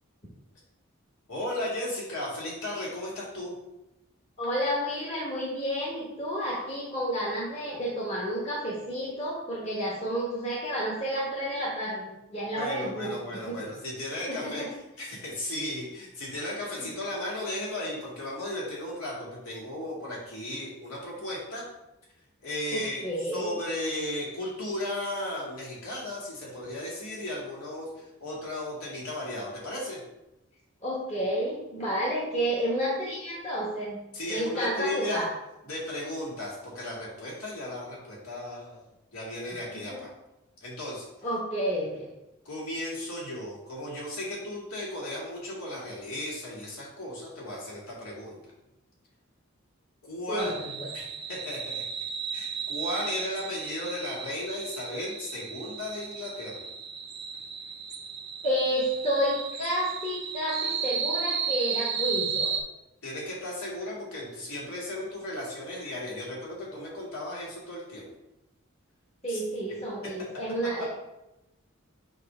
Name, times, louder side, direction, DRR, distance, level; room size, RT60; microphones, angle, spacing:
voice 1, 1.3-3.5 12.5-14.6 15.0-21.6 22.4-30.0 34.1-35.3 35.6-38.8 39.1-40.1 40.6-41.1 42.4-48.4 50.0-50.5 50.9-51.8 52.3-56.7 63.0-68.1 69.3-69.4, left 1 dB, 85° left, -5 dB, 2.3 m, -35 dB
voice 2, 4.4-13.7 14.3-14.7 16.8-16.9 22.7-23.5 30.8-34.0 34.3-35.3 39.7-40.0 41.2-42.1 50.3-50.9 58.4-62.5 69.2-70.9, equal, 30° left, -6 dB, 1.1 m, -30 dB
sound 1, 50.4-62.6, right 6 dB, 50° right, 0.5 m, -34 dB
6.5 x 2.9 x 5.2 m, 0.94 s
head